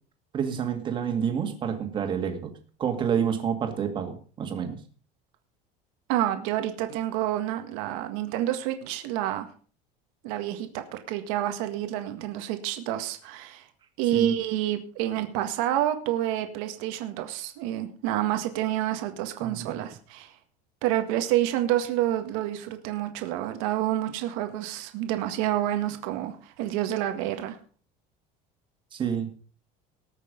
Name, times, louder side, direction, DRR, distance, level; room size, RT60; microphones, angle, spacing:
voice 1, 0.3-2.5 2.8-4.8 14.1-14.3 19.4-19.8 28.9-29.3, right 7 dB, 30° right, 5 dB, 2.1 m, -28 dB
voice 2, 6.1-9.5 10.2-13.7 14.0-20.3 20.8-27.6, right 12 dB, 80° right, 6 dB, 1.8 m, -28 dB
19.5 x 6.7 x 5.2 m, 0.41 s
cardioid pair, 165°, 17 cm